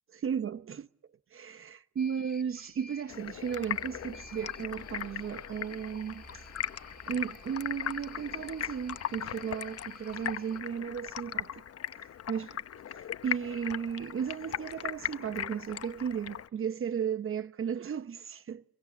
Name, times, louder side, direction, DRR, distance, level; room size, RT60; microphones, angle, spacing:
voice 1, 0.1-0.9 1.3-6.4 7.1-11.5 12.0-12.6 12.9-18.6, right 7 dB, 45° right, 0.9 m, -35 dB
sound 1, 2.0-10.6, left 3 dB, 30° left, 2.3 m, -55 dB
Stream, 3.1-16.5, left 9 dB, 55° left, 1.0 m, -39 dB
sound 2, 3.2-9.1, equal, 5° left, 2.2 m, -55 dB
25.0 x 23.5 x 7.3 m
cardioid pair, 90°, 30 cm